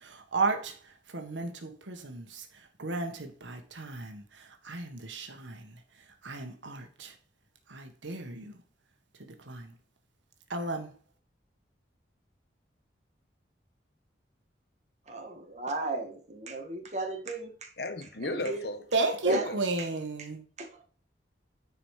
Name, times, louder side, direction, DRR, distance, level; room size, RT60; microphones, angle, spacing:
voice 1, 0.0-0.7 1.1-2.5 2.8-5.7 6.2-7.1 7.7-8.6 9.2-9.7 10.5-10.9 18.9-20.4, right 3 dB, 90° right, 1.4 m, -33 dB
voice 2, 15.1-17.7 18.3-18.6 19.2-19.5 19.8-19.9 20.2-20.3 20.6-20.7, right 3 dB, 40° right, 1.8 m, -35 dB
voice 3, 17.8-18.9 19.3-19.6, left 1 dB, 60° left, 1.2 m, -35 dB
9.8 x 5.0 x 4.9 m
head